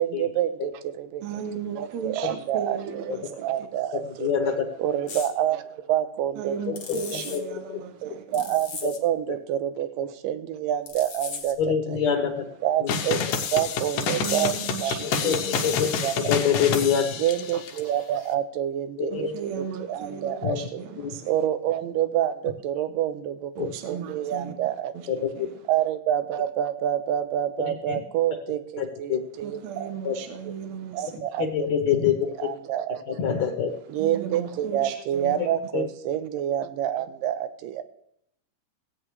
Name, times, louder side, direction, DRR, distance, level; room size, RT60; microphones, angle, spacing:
voice 1, 0.0-1.2 1.8-4.3 4.8-6.6 8.0-12.1 12.6-16.2 17.2-20.8 21.3-25.2 25.7-30.0 30.4-30.5 30.9-32.0 32.4-33.3 33.9-37.8, right 11 dB, 85° right, 2.5 m, -28 dB
voice 2, 1.2-3.5 6.4-8.5 14.2-16.2 19.1-21.3 23.6-24.5 24.9-25.6 29.4-31.5 33.9-35.4, right 7 dB, 65° right, 2.0 m, -36 dB
voice 3, 4.2-4.7 6.7-7.6 11.6-12.5 12.8-12.9 15.2-15.9 16.3-17.1 19.0-19.3 20.4-20.6 21.0-21.2 23.6-23.7 25.1-25.5 27.9-28.0 28.8-29.2 30.0-30.2 31.4-32.1 33.1-33.7 35.7-35.8, left 8 dB, 65° left, 2.2 m, -25 dB
sound 1, 5.1-5.3 6.8-7.4 8.3-9.0 10.9-11.6, left 5 dB, 50° left, 1.4 m, -38 dB
sound 2, 12.9-17.8, left 6 dB, 90° left, 2.6 m, -28 dB
17.0 x 8.8 x 3.2 m
omnidirectional pair, 3.8 m